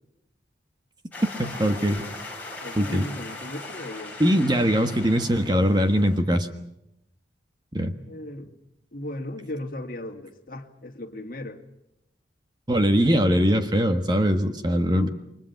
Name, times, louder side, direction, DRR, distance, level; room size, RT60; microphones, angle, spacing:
sound 1, 1.1-6.2, left 2 dB, 10° left, 5.8 m, -39 dB
voice 1, 1.4-2.1 2.8-3.0 4.2-6.5 7.7-7.9 12.7-15.1, equal, 25° right, 1.4 m, -21 dB
voice 2, 2.6-4.4 8.1-8.5 8.9-11.6 14.9-15.1, left 1 dB, 50° left, 2.4 m, -36 dB
29.0 x 23.5 x 5.9 m
head